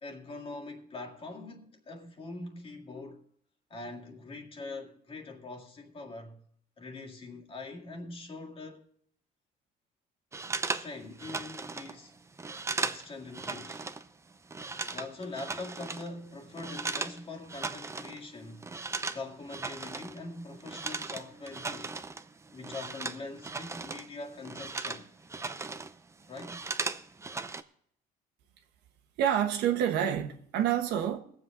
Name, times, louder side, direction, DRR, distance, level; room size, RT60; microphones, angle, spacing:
voice 1, 0.0-3.3 3.7-6.4 6.8-8.9 10.6-12.1 12.8-13.9 14.9-18.7 19.1-21.9 22.5-25.1 26.3-26.6, left 3 dB, 35° left, 1.9 m, -43 dB
sound 1, 10.3-14.1 14.3-17.2 17.4-18.2 18.5-24.1 24.4-25.9 26.2-27.6, right 3 dB, 15° right, 0.6 m, -37 dB
voice 2, 29.2-31.2, right 10 dB, 85° right, 1.4 m, -28 dB
20.5 x 7.7 x 3.7 m
cardioid pair, 110°, 17 cm